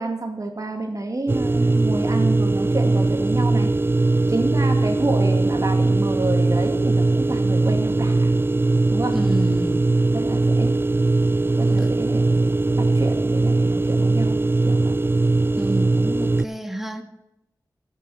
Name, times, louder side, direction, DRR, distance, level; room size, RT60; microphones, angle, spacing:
voice 1, 0.0-3.7 4.3-8.3 8.9-9.2 10.1-10.8 11.6-14.9, right 2 dB, 50° right, 4 dB, 2.1 m, -29 dB
sound 1, 1.3-16.5, right 2 dB, 30° right, 0.4 m, -20 dB
voice 2, 9.1-10.0 11.8-11.9 15.6-17.0, right 1 dB, 5° right, 5 dB, 1.5 m, -29 dB
14.0 x 7.6 x 5.5 m, 0.89 s
wide cardioid pair, 60°, 8 cm